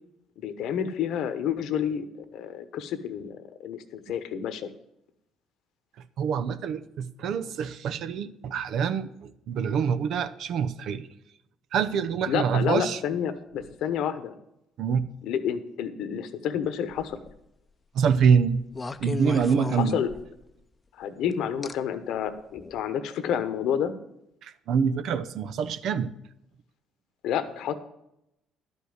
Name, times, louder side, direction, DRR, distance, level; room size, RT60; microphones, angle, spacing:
voice 1, 0.4-2.0 2.3-4.7 12.3-14.3 15.2-17.2 19.7-20.1 21.0-23.9 27.2-27.7, left 8 dB, 75° left, 11 dB, 1.0 m, -29 dB
voice 2, 6.2-11.1 11.7-13.0 14.8-15.0 17.9-18.6 19.0-20.0 24.4-26.1, right 6 dB, 70° right, 12 dB, 0.7 m, -25 dB
sound 1, 16.9-17.4 18.7-20.5 21.6-21.7 22.6-22.8, left 2 dB, 25° left, 0.6 m, -33 dB
11.5 x 5.4 x 7.9 m, 0.82 s
supercardioid pair, 80°, 0 cm